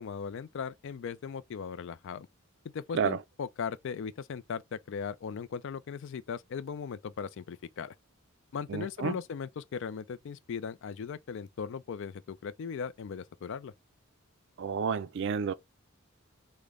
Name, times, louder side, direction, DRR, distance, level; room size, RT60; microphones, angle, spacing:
voice 1, 0.0-2.3 2.6-7.9 8.5-13.7, left 6 dB, 60° left, 0.3 m, -38 dB
voice 2, 8.7-9.2 14.6-15.5, right 6 dB, 60° right, 0.4 m, -30 dB
3.7 x 2.1 x 3.3 m
head